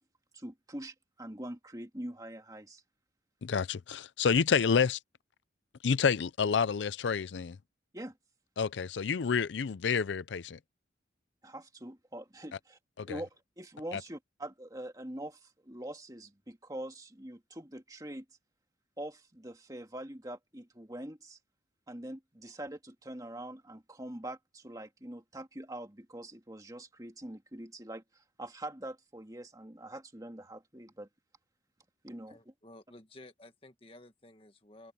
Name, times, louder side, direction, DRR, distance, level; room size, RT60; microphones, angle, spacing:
voice 1, 0.3-2.8 7.9-8.2 11.4-12.8 13.1-13.3 13.6-18.2 19.0-21.4 21.9-31.1 32.0-32.4, right 1 dB, 20° right, 2.0 m, -44 dB
voice 2, 3.4-5.0 5.8-7.6 8.6-10.6 13.0-13.2 13.9-14.0, left 6 dB, 90° left, 0.5 m, -29 dB
voice 3, 32.3-34.9, left 1 dB, 30° left, 1.7 m, -54 dB
open air
head